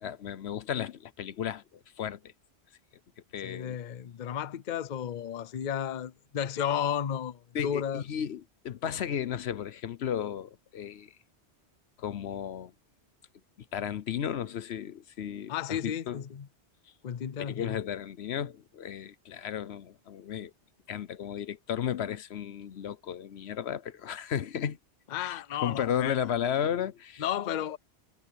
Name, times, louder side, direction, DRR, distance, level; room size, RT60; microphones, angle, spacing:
voice 1, 0.0-2.3 3.3-3.8 7.5-11.1 12.0-12.7 13.7-16.2 17.4-20.5 20.9-24.8 25.1-27.2, left 9 dB, 75° left, 1.0 m, -34 dB
voice 2, 3.4-8.0 15.5-16.5 17.0-17.8 25.1-26.2 27.2-27.8, left 9 dB, 50° left, 0.7 m, -33 dB
omnidirectional pair, 1.1 m